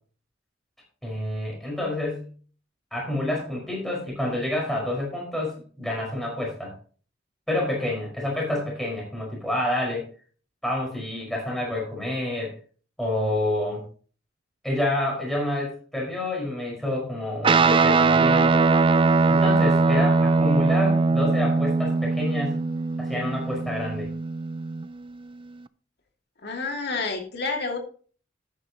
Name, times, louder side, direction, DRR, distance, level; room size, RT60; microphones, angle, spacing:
voice 1, 1.0-2.3 2.9-6.7 7.5-10.0 10.6-12.5 13.0-13.8 14.6-18.6 19.3-22.6 23.0-24.1, left 1 dB, ahead, -3 dB, 5.1 m, -28 dB
Guitar, 17.4-25.1, right 4 dB, 30° right, 0.4 m, -21 dB
voice 2, 26.4-27.8, left 3 dB, 60° left, 3 dB, 2.3 m, -29 dB
12.0 x 9.6 x 3.0 m, 0.41 s
head